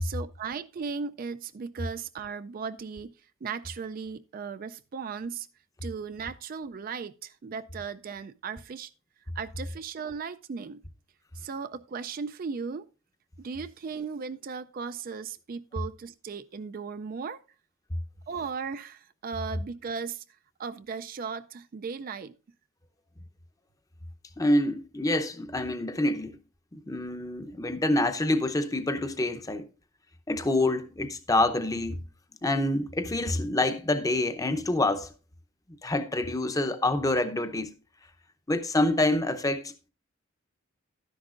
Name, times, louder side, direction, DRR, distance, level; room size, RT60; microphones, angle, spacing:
voice 1, 0.0-3.1 3.4-5.5 5.8-8.9 9.3-10.8 11.3-12.9 13.4-17.4 18.3-20.2 20.6-22.3, right 5 dB, 45° right, 0.4 m, -36 dB
voice 2, 24.4-26.4 26.7-29.7 30.3-32.0 32.4-35.1 35.8-37.7 38.5-39.7, left 2 dB, 15° left, 0.7 m, -27 dB
12.0 x 10.5 x 2.5 m
head